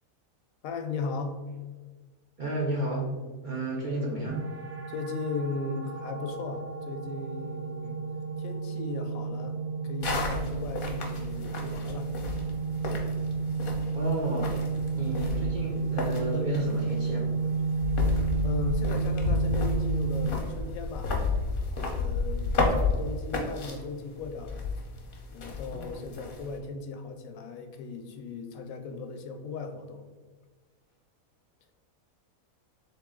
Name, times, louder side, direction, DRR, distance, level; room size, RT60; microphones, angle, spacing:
voice 1, 0.6-1.4 4.9-8.0 8.4-12.1 18.4-21.1 21.8-24.7 25.3-30.0, left 4 dB, 75° left, 5 dB, 1.0 m, -37 dB
voice 2, 2.4-3.1 3.4-4.5 13.9-14.5 14.9-17.3, right 1 dB, 45° right, -4 dB, 0.7 m, -31 dB
sound 1, 4.3-20.3, right 4 dB, 80° right, 1.1 m, -31 dB
sound 2, 10.0-26.6, left 3 dB, 50° left, 0.8 m, -32 dB
3.7 x 3.3 x 3.6 m, 1.4 s
omnidirectional pair, 1.5 m